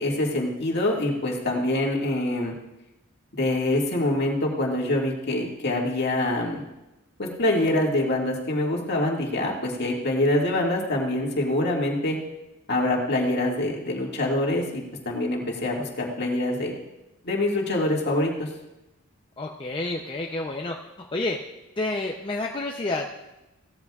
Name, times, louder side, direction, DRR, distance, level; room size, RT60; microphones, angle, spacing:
voice 1, 0.0-2.5 3.3-6.6 7.2-12.2 12.7-16.7 17.2-18.5, left 1 dB, 50° left, -1 dB, 2.1 m, -25 dB
voice 2, 19.4-20.8 21.1-21.4 21.8-23.2, left 2 dB, 25° left, 0 dB, 0.6 m, -29 dB
17.0 x 13.5 x 2.4 m, 0.98 s
head